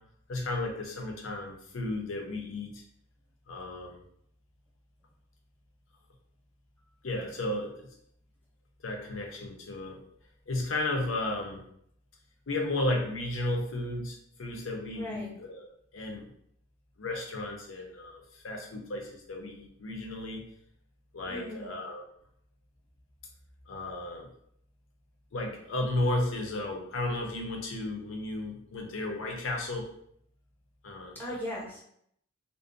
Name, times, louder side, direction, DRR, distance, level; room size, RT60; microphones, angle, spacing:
voice 1, 0.3-2.8 3.5-4.0 7.0-7.9 8.8-10.0 10.5-11.6 12.5-16.3 17.0-20.4 21.1-22.0 23.7-24.3 25.3-29.9 30.8-31.1, left 2 dB, 70° left, 2 dB, 0.6 m, -34 dB
voice 2, 15.0-15.3 21.2-21.7 31.1-31.8, equal, 10° left, -5 dB, 0.7 m, -38 dB
2.5 x 2.1 x 2.5 m, 0.70 s
head